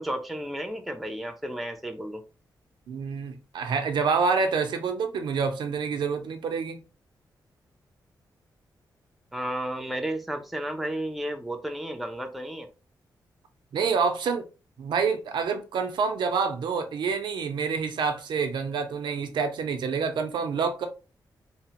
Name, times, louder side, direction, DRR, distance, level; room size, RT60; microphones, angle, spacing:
voice 1, 0.0-2.2 9.3-12.7, right 1 dB, ahead, 0.3 m, -33 dB
voice 2, 2.9-6.8 13.7-14.5 14.8-20.9, right 5 dB, 85° right, 0.5 m, -27 dB
2.9 x 2.0 x 2.8 m
wide cardioid pair, 155°, 8 cm